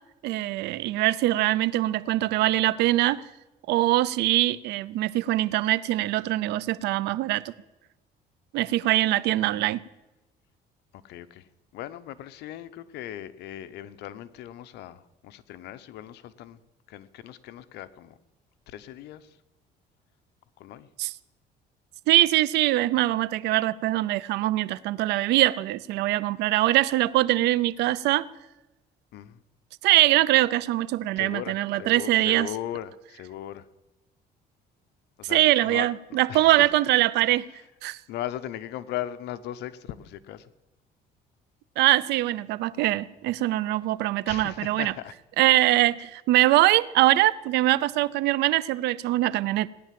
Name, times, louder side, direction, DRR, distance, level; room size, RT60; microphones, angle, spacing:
voice 1, 0.2-3.2 3.7-7.5 8.5-9.8 21.0-21.1 22.1-28.3 29.8-32.5 35.3-37.5 37.8-38.0 41.8-44.9 45.4-49.7, right 16 dB, 85° right, 0.6 m, -23 dB
voice 2, 10.9-11.5 11.7-16.6 16.9-18.2 18.7-19.4 20.6-20.9 29.1-29.4 31.2-33.7 35.2-36.7 38.1-40.5 44.3-45.1 45.5-45.7, left 12 dB, 80° left, 0.9 m, -38 dB
18.0 x 10.5 x 7.6 m
cardioid pair, 110°, 17 cm